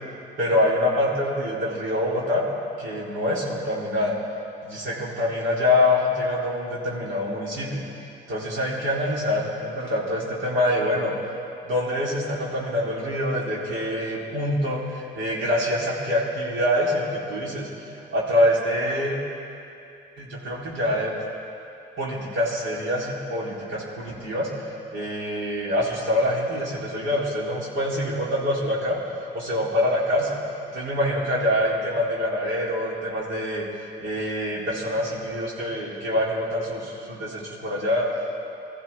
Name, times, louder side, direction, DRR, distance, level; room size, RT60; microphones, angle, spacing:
voice 1, 0.4-2.4 2.8-4.1 4.6-7.8 8.3-11.1 11.6-17.7 18.1-19.2 20.2-21.1 22.0-24.5 24.9-29.0 29.3-30.4 30.7-33.6 34.0-38.4, left 1 dB, 75° right, -5 dB, 3.8 m, -25 dB
21.0 x 14.5 x 3.7 m, 2.6 s
cardioid pair, 90°, 20 cm